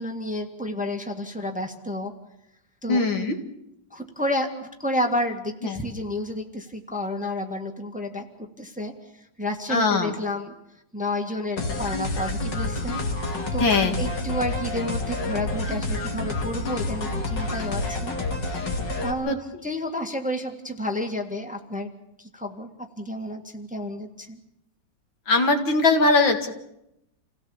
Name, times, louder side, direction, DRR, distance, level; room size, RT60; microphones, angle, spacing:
voice 1, 0.0-2.1 2.8-3.0 3.9-8.2 8.6-8.9 9.4-10.5 10.9-13.0 13.5-18.2 19.0-19.4 19.6-21.9 22.2-22.7 23.0-24.4, left 1 dB, 5° right, 4 dB, 1.6 m, -30 dB
voice 2, 2.9-3.4 5.6-5.8 9.7-10.1 13.6-14.0 19.3-19.4 25.3-26.5, left 3 dB, 80° left, 5 dB, 2.8 m, -21 dB
sound 1, 11.6-19.1, left 2 dB, 65° left, 3.0 m, -28 dB
28.0 x 17.0 x 7.2 m, 0.84 s
omnidirectional pair, 2.1 m